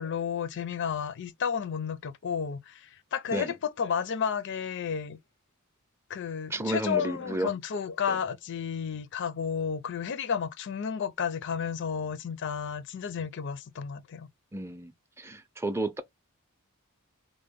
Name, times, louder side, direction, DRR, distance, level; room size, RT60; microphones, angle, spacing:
voice 1, 0.0-5.2 6.1-14.3, left 7 dB, 60° left, 0.4 m, -32 dB
voice 2, 6.5-7.5 8.1-8.2 14.5-14.9 15.2-16.0, right 1 dB, 10° right, 0.5 m, -32 dB
3.7 x 2.0 x 3.4 m
head